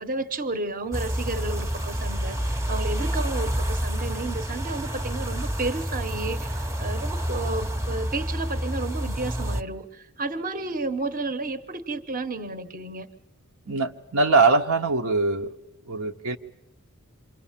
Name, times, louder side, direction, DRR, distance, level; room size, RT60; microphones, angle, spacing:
voice 1, 0.0-13.1, right 3 dB, 40° right, 10 dB, 1.1 m, -32 dB
sound 1, 0.9-9.6, equal, 15° right, 0.9 m, -28 dB
voice 2, 13.7-15.6 15.9-16.4, right 3 dB, 75° right, 3 dB, 1.1 m, -22 dB
27.5 x 24.0 x 7.4 m, 0.90 s
head